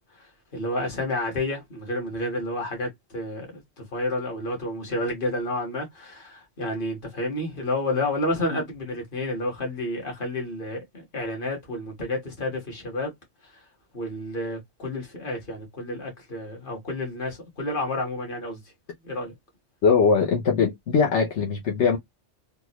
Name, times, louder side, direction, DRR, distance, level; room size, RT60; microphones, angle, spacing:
voice 1, 0.2-13.1 13.9-18.6 19.0-19.3, left 1 dB, 45° left, 1.7 m, -30 dB
voice 2, 19.8-22.0, left 5 dB, 75° left, 1.2 m, -21 dB
3.6 x 2.4 x 3.0 m
omnidirectional pair, 1.2 m